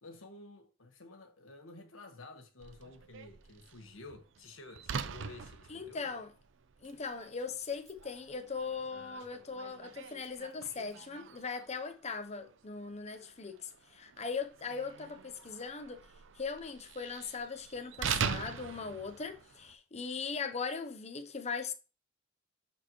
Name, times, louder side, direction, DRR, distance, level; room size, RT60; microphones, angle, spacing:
voice 1, 0.0-6.2 8.9-9.4, left 2 dB, 80° left, 1.4 m, -52 dB
Slam, 2.6-19.8, right 7 dB, 65° right, 0.5 m, -43 dB
voice 2, 5.7-6.3 6.8-16.0 16.3-21.7, left 5 dB, 35° left, 0.7 m, -39 dB
11.5 x 4.3 x 3.0 m
head